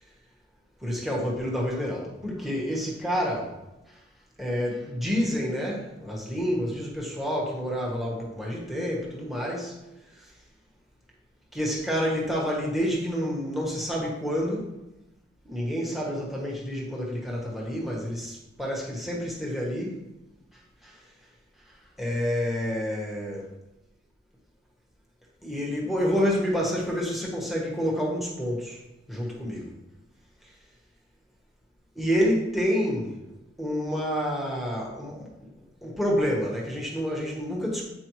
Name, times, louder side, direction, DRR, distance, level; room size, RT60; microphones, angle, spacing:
voice 1, 0.8-3.5 4.4-9.7 11.5-14.6 15.4-19.9 22.0-23.5 25.4-28.8 29.1-29.7 32.0-33.1 33.6-35.3 35.8-37.8, equal, ahead, -3 dB, 1.2 m, -28 dB
8.5 x 4.6 x 3.1 m, 0.95 s
head